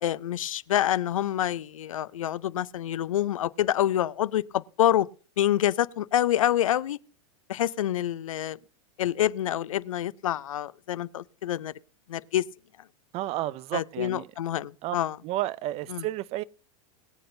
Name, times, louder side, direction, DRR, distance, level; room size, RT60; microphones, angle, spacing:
voice 1, 0.0-5.1 5.4-7.0 7.5-8.6 9.0-11.7 12.1-12.4 13.7-15.2 15.9-16.0, left 12 dB, 90° left, 0.5 m, -27 dB
voice 2, 13.1-14.3 14.8-15.0 15.2-16.4, right 15 dB, 40° right, 0.5 m, -31 dB
22.5 x 7.7 x 2.6 m
hypercardioid pair, 115°, 17 cm